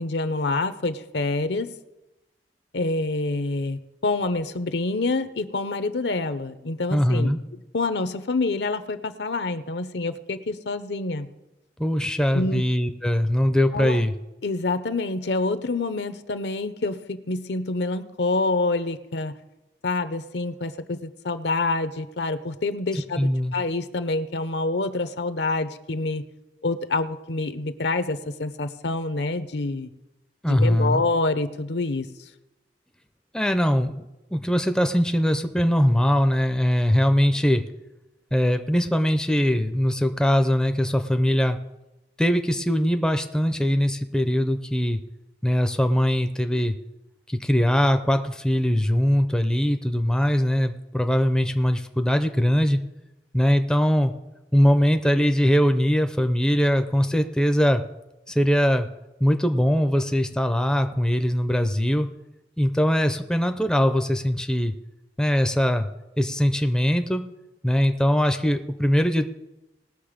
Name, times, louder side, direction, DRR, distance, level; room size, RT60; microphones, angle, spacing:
voice 1, 0.0-1.8 2.7-7.3 7.7-11.3 12.3-12.6 13.7-14.0 14.4-19.3 19.8-26.2 26.6-29.9 30.5-32.1, left 3 dB, 70° left, 12 dB, 0.7 m, -27 dB
voice 2, 6.9-7.4 11.8-14.1 23.2-23.5 30.4-31.0 33.3-34.0 34.3-37.6 38.3-41.6 42.2-45.0 45.4-46.7 47.3-52.8 53.3-54.1 54.5-57.8 58.3-58.9 59.2-62.1 62.6-64.7 65.2-65.9 66.2-67.2 67.6-69.3, equal, 5° left, 7 dB, 0.5 m, -21 dB
19.5 x 6.6 x 5.1 m, 0.97 s
head